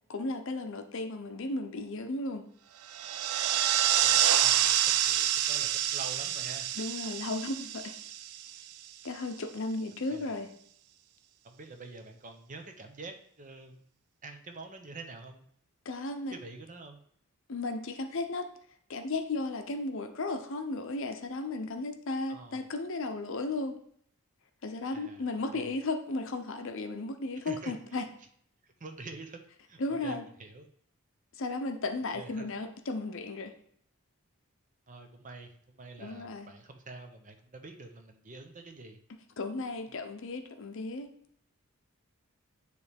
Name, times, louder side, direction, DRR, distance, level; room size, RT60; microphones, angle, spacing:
voice 1, 0.1-2.4 6.8-8.0 9.0-10.5 15.8-16.4 17.5-18.5 18.9-23.8 24.6-28.1 29.8-30.2 31.4-33.5 36.0-36.5 39.4-41.1, left 2 dB, 60° left, 7 dB, 0.6 m, -35 dB
sound 1, 2.9-8.7, right 11 dB, 80° right, 0.4 m, -27 dB
voice 2, 4.0-4.8 5.0-6.7 10.1-10.4 11.4-13.8 14.2-15.5 16.3-17.0 22.3-22.6 24.9-25.3 25.5-25.7 27.4-27.7 28.6-29.4 29.7-30.7 32.1-32.5 34.9-39.0, right 3 dB, 35° right, 5 dB, 0.7 m, -46 dB
9.4 x 3.2 x 3.4 m, 0.64 s
head